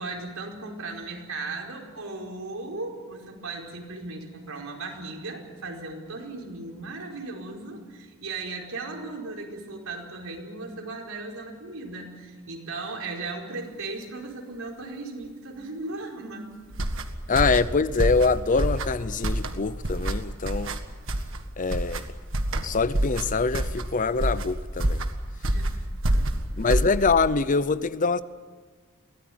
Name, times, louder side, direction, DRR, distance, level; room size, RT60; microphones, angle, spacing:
voice 1, 0.0-16.5 17.0-17.4 25.5-25.7 26.1-26.7, right 3 dB, 80° right, 4.9 m, -37 dB
sound 1, 16.7-27.3, right 1 dB, 65° right, 1.7 m, -28 dB
voice 2, 17.3-20.8 21.6-22.0 22.6-25.0 26.6-28.2, left 4 dB, 40° left, 0.6 m, -24 dB
23.5 x 16.5 x 9.4 m
head